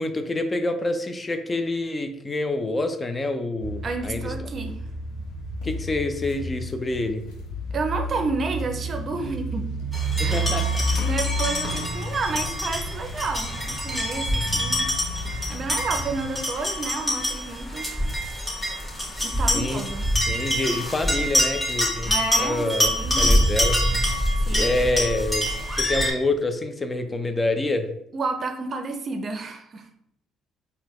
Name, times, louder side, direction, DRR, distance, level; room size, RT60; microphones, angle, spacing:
voice 1, 0.0-4.3 5.6-7.3 10.2-11.1 19.2-19.8 20.3-22.9 23.2-23.8 24.5-25.5 25.7-27.9, left 2 dB, 25° left, 8 dB, 0.4 m, -27 dB
sound 1, 3.6-16.3, right 1 dB, 80° left, 0.8 m, -31 dB
voice 2, 3.8-4.8 7.7-9.7 10.2-10.5 11.0-14.9 15.5-17.9 19.2-20.1 22.1-23.4 24.4-24.7 28.1-29.9, right 3 dB, 45° right, 5 dB, 0.5 m, -30 dB
sound 2, 9.9-26.1, equal, 10° left, 1.4 m, -25 dB
3.9 x 2.2 x 3.0 m, 0.76 s
supercardioid pair, 65°, 0 cm